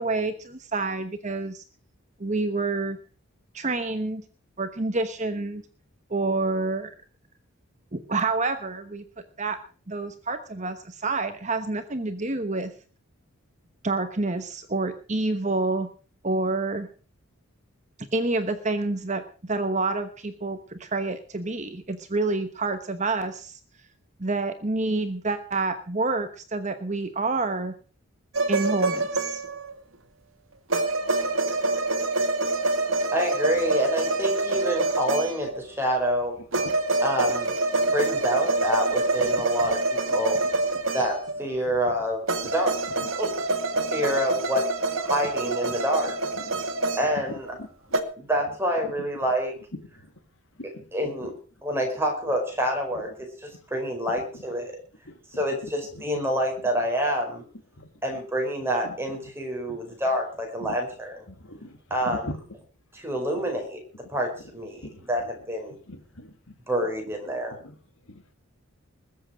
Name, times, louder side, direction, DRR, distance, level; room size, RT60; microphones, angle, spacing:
voice 1, 0.0-1.6 2.2-3.0 3.5-4.2 4.6-5.6 6.1-6.9 7.9-9.0 9.4-9.6 9.9-12.7 13.8-15.9 16.2-16.9 18.1-23.6 24.2-27.7 28.5-29.4, right 3 dB, 35° right, 9 dB, 1.0 m, -28 dB
sound 1, 28.3-29.7 30.7-35.6 36.5-41.5 42.3-47.6 47.9-48.0, right 2 dB, 70° right, 1.9 m, -26 dB
voice 2, 33.1-36.4 37.0-37.5 37.9-40.4 40.9-42.8 43.1-43.3 43.9-46.2 47.0-47.6 48.2-49.5 50.9-51.3 51.6-54.7 55.3-57.4 58.0-61.2 61.9-62.3 62.9-63.8 64.1-65.8 66.7-67.6, equal, 10° right, 2 dB, 4.9 m, -27 dB
voice 3, 61.4-61.8 62.1-62.4 64.8-65.0 65.9-66.3 68.1-68.3, left 1 dB, 65° left, 8 dB, 2.3 m, -39 dB
21.0 x 7.8 x 6.3 m, 0.39 s
head